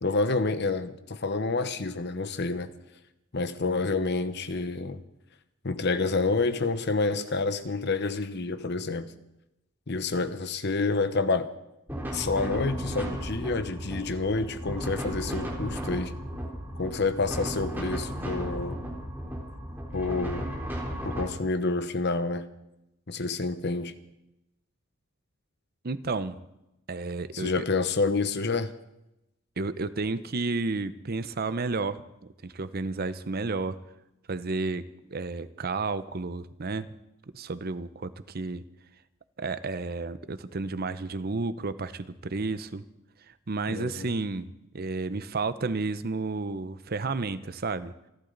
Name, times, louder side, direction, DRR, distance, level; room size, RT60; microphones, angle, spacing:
voice 1, 0.0-2.7 3.3-5.0 5.6-9.1 9.9-11.5 12.1-16.1 16.8-18.8 19.9-20.4 21.0-22.5 23.1-23.9 27.3-28.7 43.7-44.1, left 3 dB, 55° left, 1.0 m, -28 dB
sound 1, 11.9-21.2, equal, 10° right, 3.5 m, -35 dB
voice 2, 25.8-26.4 26.9-27.6 29.6-32.1 32.4-33.8 34.3-36.9 37.3-38.6 39.4-42.8 43.5-44.5 44.7-47.9, right 3 dB, 45° right, 0.7 m, -31 dB
27.5 x 12.0 x 4.0 m
head